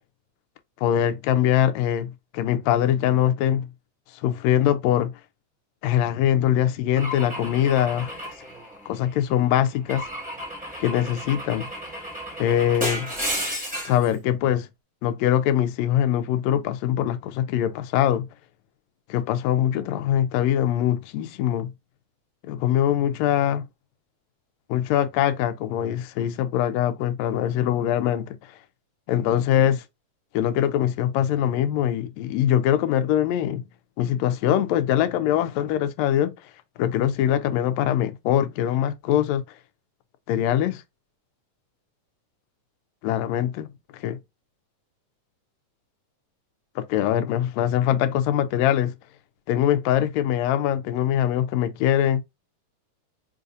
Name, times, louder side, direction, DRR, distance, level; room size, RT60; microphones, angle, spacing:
voice 1, 0.8-3.6 4.2-5.1 5.8-8.1 8.9-10.0 10.8-11.7 12.4-13.1 13.8-14.7 15.0-18.2 19.1-21.7 22.5-23.6 24.7-28.4 29.1-29.8 30.3-33.6 34.0-36.3 36.8-39.4 40.3-40.8 43.0-43.7 44.0-44.2 46.8-48.9 49.5-52.2, left 11 dB, 85° left, 1.6 m, -22 dB
Car / Engine / Glass, 7.0-9.2 9.9-14.1, equal, 5° right, 0.9 m, -33 dB
4.7 x 2.6 x 2.5 m
omnidirectional pair, 3.6 m